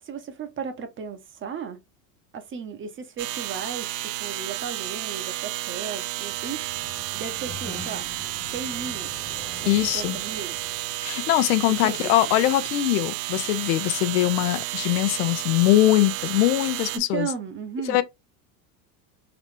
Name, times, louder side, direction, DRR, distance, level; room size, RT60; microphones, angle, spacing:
voice 1, 0.0-1.8 2.3-8.1 8.5-9.1 9.6-10.6 11.8-12.3 16.9-18.0, right 6 dB, 25° right, 0.8 m, -35 dB
sound 1, 3.2-17.0, right 16 dB, 75° right, 0.6 m, -32 dB
Sliding door, 6.3-11.4, left 4 dB, 10° left, 0.3 m, -44 dB
voice 2, 9.7-10.2 11.0-17.3 17.9-18.0, left 15 dB, 85° left, 0.7 m, -22 dB
4.0 x 3.0 x 3.2 m
supercardioid pair, 125°, 46 cm